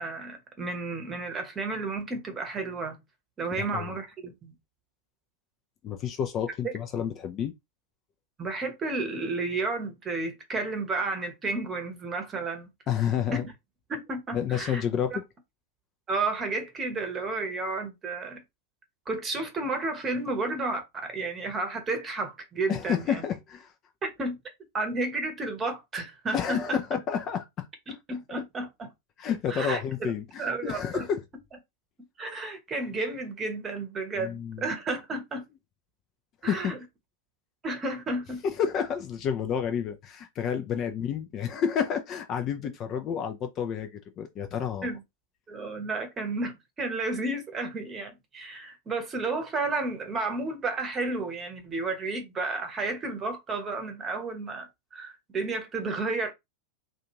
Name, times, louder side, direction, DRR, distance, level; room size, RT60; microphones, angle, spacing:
voice 1, 0.0-3.0 3.4-4.5 6.6-6.7 8.4-12.7 13.4-13.5 13.9-14.8 15.1-15.2 16.1-18.4 19.1-23.2 24.0-24.4 24.7-27.0 27.9-28.9 29.5-30.1 30.4-31.1 32.2-35.4 36.4-36.8 37.6-38.4 44.8-45.0 45.5-56.3, right 3 dB, 20° right, 1.0 m, -32 dB
voice 2, 3.5-3.9 5.8-7.5 12.9-13.4 14.3-15.2 22.7-23.7 26.3-27.7 29.2-31.2 34.1-34.7 36.4-36.7 38.6-44.9, left 8 dB, 30° left, 0.5 m, -30 dB
2.5 x 2.5 x 3.0 m
figure-of-eight pair, 90°, 0 cm